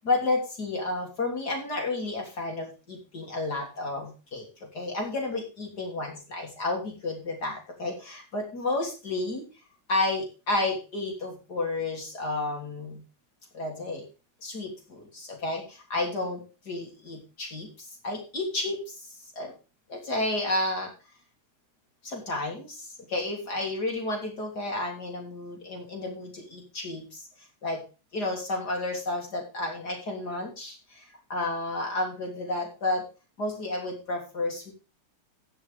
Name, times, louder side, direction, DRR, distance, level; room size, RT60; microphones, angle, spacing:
voice 1, 0.0-9.4 9.9-13.0 13.5-14.1 14.4-19.5 19.9-20.9 22.0-27.3 27.6-27.8 28.1-33.0 33.4-34.7, left 2 dB, 45° left, 1 dB, 3.8 m, -31 dB
15.5 x 6.9 x 3.6 m, 0.32 s
omnidirectional pair, 2.4 m